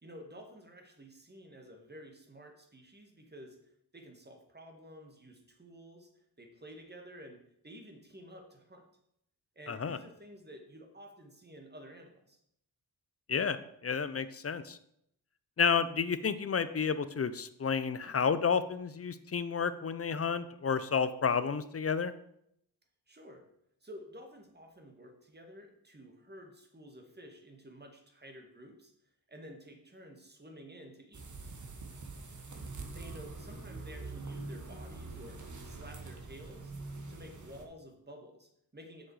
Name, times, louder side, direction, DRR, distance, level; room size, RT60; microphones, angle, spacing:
voice 1, 0.0-6.1 6.4-8.9 9.6-12.4 23.1-23.4 23.8-28.9 29.3-31.3 33.0-36.7 37.1-39.1, equal, 25° right, 4 dB, 1.8 m, -52 dB
voice 2, 9.7-10.0 13.3-13.6 13.8-14.8 15.6-22.1, left 6 dB, 35° left, 13 dB, 0.6 m, -31 dB
sound 1, 31.1-37.6, right 3 dB, 50° right, 1.5 m, -44 dB
7.5 x 6.2 x 4.8 m, 0.73 s
cardioid pair, 75°, 39 cm